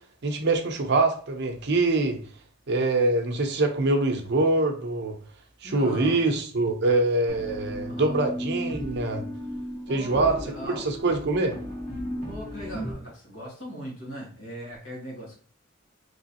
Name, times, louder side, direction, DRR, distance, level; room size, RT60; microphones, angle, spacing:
voice 1, 0.2-2.2 2.7-5.2 5.6-9.2 9.9-10.4 10.7-11.5, right 2 dB, 60° right, 4 dB, 0.7 m, -24 dB
voice 2, 5.6-6.3 7.9-8.3 9.9-10.9 12.3-15.4, equal, 90° left, -3 dB, 1.8 m, -39 dB
sound 1, 7.3-12.9, equal, 35° left, 1.4 m, -35 dB
3.4 x 3.0 x 2.8 m, 0.44 s
head